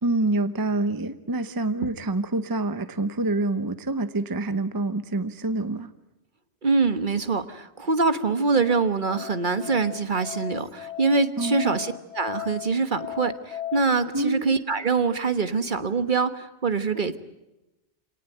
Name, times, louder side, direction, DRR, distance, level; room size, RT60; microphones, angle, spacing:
voice 1, 0.0-5.9 11.4-11.8 14.1-14.4, right 2 dB, 20° right, 12 dB, 0.8 m, -26 dB
voice 2, 6.6-17.2, right 4 dB, 50° right, 11 dB, 1.4 m, -24 dB
Musical instrument, 8.1-13.8, left 13 dB, 80° left, 2.2 m, -37 dB
26.5 x 18.5 x 9.1 m, 0.97 s
omnidirectional pair, 1.1 m